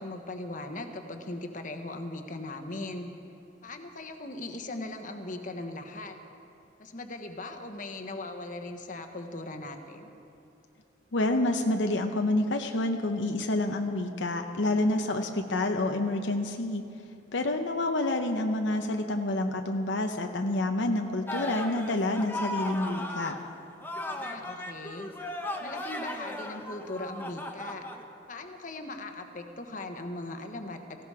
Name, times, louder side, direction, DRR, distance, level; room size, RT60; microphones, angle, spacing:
voice 1, 0.0-3.1 3.6-6.2 6.8-10.1 24.0-25.1 25.6-27.8 28.3-31.1, left 2 dB, 45° left, 6 dB, 1.2 m, -39 dB
voice 2, 11.1-16.8 17.3-23.3, left 2 dB, 80° left, 4 dB, 0.8 m, -28 dB
sound 1, 21.3-23.4 23.8-28.0, left 1 dB, 10° left, 1.0 m, -36 dB
18.0 x 16.0 x 4.9 m, 2.7 s
head